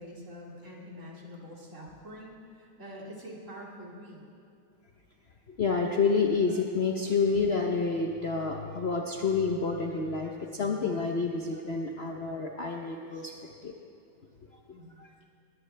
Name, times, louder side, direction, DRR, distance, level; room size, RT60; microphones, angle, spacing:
voice 1, 0.0-4.2 14.7-15.0, equal, 35° right, -3 dB, 2.8 m, -45 dB
voice 2, 5.5-13.3 13.6-13.7 15.0-15.1, left 4 dB, 80° left, 1 dB, 0.5 m, -29 dB
19.5 x 16.5 x 3.3 m, 2.6 s
omnidirectional pair, 2.3 m